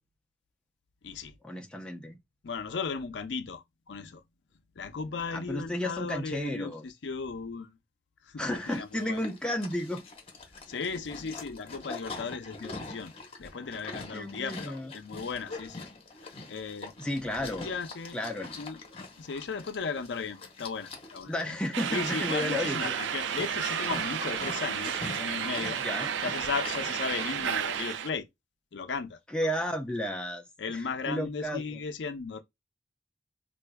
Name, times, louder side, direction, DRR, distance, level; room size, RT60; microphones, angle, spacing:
voice 1, 1.4-2.2 5.3-6.9 8.4-10.0 12.2-12.3 14.1-14.9 17.0-17.7 18.1-18.5 21.3-23.0 25.8-26.1 29.3-31.8, left 1 dB, 5° left, 0.5 m, -33 dB
voice 2, 2.4-4.2 4.8-7.8 8.3-9.2 10.7-13.1 13.4-15.8 16.5-16.9 17.4-18.2 18.6-21.6 21.9-25.8 26.2-28.3 28.7-29.2 30.6-32.4, left 5 dB, 75° left, 0.5 m, -36 dB
Livestock farm animals working animals, 8.5-27.7, left 3 dB, 30° left, 0.9 m, -44 dB
sound 1, 21.7-28.1, right 8 dB, 80° right, 0.4 m, -32 dB
4.4 x 2.4 x 2.2 m
head